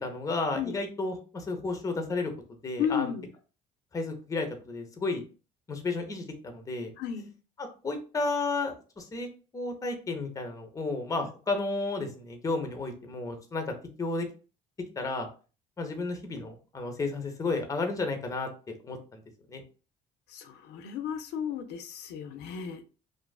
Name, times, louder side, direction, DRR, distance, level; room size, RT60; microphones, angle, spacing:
voice 1, 0.0-2.3 2.6-3.1 3.9-5.2 5.7-6.9 7.6-9.3 9.5-14.3 15.0-15.3 15.8-19.2 19.5-19.6, left 3 dB, 20° left, 5 dB, 0.6 m, -32 dB
voice 2, 2.8-3.3 7.0-7.3 20.3-22.8, left 8 dB, 80° left, 7 dB, 0.4 m, -33 dB
2.5 x 2.4 x 2.3 m, 0.36 s
cardioid pair, 110°, 17 cm